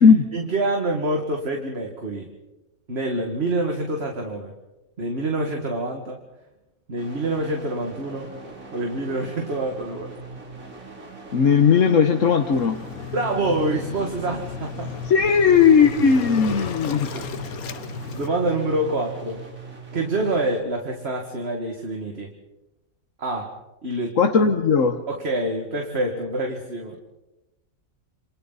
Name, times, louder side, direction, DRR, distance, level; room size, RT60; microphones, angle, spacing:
voice 1, 0.3-2.3 2.9-4.6 5.0-6.2 6.9-8.3 8.7-10.1 13.1-15.0 17.1-17.4 18.1-19.4 19.9-22.3 23.2-23.6 23.8-24.2 25.1-27.0, right 2 dB, 45° right, 2 dB, 2.4 m, -26 dB
sound 1, 7.0-20.6, right 3 dB, 70° right, 3.6 m, -40 dB
voice 2, 11.3-12.8 15.1-17.1 24.2-25.0, left 6 dB, 65° left, 5 dB, 1.5 m, -17 dB
Waves surf, 12.5-18.3, left 8 dB, 85° left, 1.5 m, -34 dB
28.5 x 27.0 x 4.2 m, 0.97 s
omnidirectional pair, 1.5 m